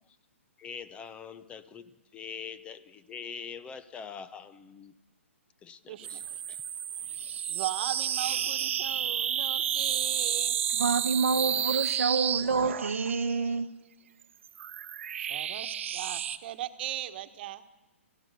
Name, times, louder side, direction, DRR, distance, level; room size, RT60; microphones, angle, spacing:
voice 1, 0.6-4.9 5.6-6.6, left 7 dB, 15° left, 0.8 m, -44 dB
voice 2, 5.9-6.2 7.5-10.6 15.2-17.6, right 13 dB, 45° right, 1.4 m, -37 dB
sound 1, 6.0-13.3 14.2-16.4, right 9 dB, 60° right, 1.0 m, -31 dB
voice 3, 10.8-13.7, right 4 dB, 85° right, 1.1 m, -27 dB
30.0 x 16.0 x 6.7 m
hypercardioid pair, 140°, 7 cm